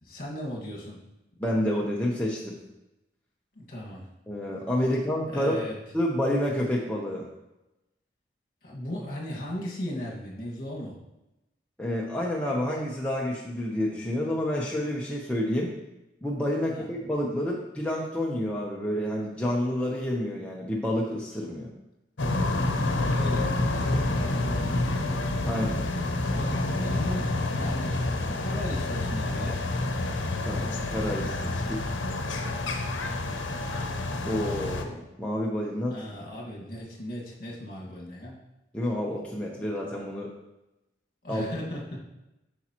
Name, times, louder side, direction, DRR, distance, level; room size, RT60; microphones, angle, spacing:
voice 1, 0.0-1.0 3.6-4.0 5.3-5.8 8.6-11.0 16.7-16.8 22.8-25.2 26.3-29.6 35.9-38.4 41.2-42.0, equal, 50° left, -3 dB, 1.8 m, -37 dB
voice 2, 1.4-2.6 4.3-5.6 5.9-7.3 11.8-15.7 16.2-21.7 25.4-25.8 30.4-31.8 34.2-36.1 38.7-40.3 41.3-41.4, left 1 dB, 5° left, -3 dB, 0.7 m, -29 dB
sound 1, 22.2-34.8, left 2 dB, 85° left, 0.8 m, -28 dB
8.4 x 6.0 x 2.9 m, 0.94 s
head